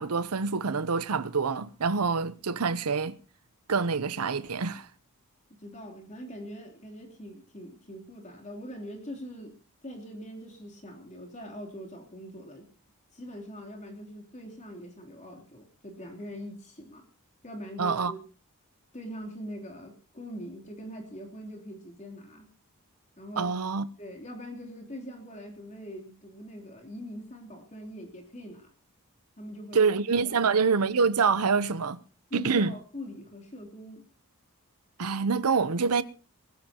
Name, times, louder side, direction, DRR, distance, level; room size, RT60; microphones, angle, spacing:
voice 1, 0.0-3.2 3.7-4.9 17.8-18.1 23.4-23.9 29.7-32.0 32.3-32.7 35.0-36.0, right 5 dB, 80° right, 0.7 m, -26 dB
voice 2, 5.6-9.6 9.8-12.7 13.1-17.1 17.4-18.2 18.9-22.5 23.2-23.5 24.0-28.7 29.4-29.8 30.2-30.5 32.3-34.0, equal, 30° left, 3.2 m, -42 dB
20.5 x 17.5 x 2.9 m
head